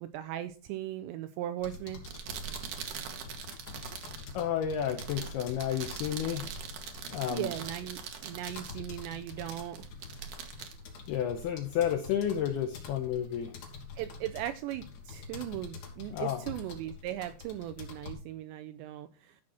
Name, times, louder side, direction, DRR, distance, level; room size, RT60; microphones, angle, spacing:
voice 1, 0.0-2.0 7.3-9.9 14.0-19.4, right 13 dB, 85° right, 2.5 m, -38 dB
sound 1, 1.6-18.1, left 5 dB, 60° left, 4.2 m, -47 dB
sound 2, 1.9-11.7, right 7 dB, 70° right, 2.0 m, -43 dB
voice 2, 4.3-6.5 7.1-7.5 11.1-13.6 16.1-16.4, left 9 dB, 85° left, 2.2 m, -31 dB
13.5 x 6.2 x 4.2 m
omnidirectional pair, 5.6 m